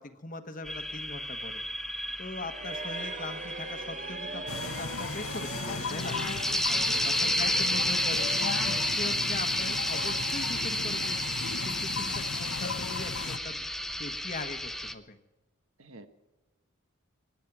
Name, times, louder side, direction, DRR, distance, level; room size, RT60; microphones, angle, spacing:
voice 1, 0.0-1.6 2.2-6.2 6.7-8.3 8.7-11.2 11.6-13.7 14.0-15.2, left 2 dB, 35° left, 9 dB, 1.2 m, -40 dB
sound 1, 0.6-14.9, left 1 dB, ahead, 0.5 m, -32 dB
sound 2, 2.4-11.1, right 4 dB, 35° right, 0.9 m, -43 dB
sound 3, 4.5-13.4, left 5 dB, 75° left, 1.0 m, -36 dB
voice 2, 6.5-7.4 15.8-16.1, right 2 dB, 70° right, 9 dB, 1.3 m, -49 dB
23.5 x 10.0 x 6.0 m, 1.2 s
head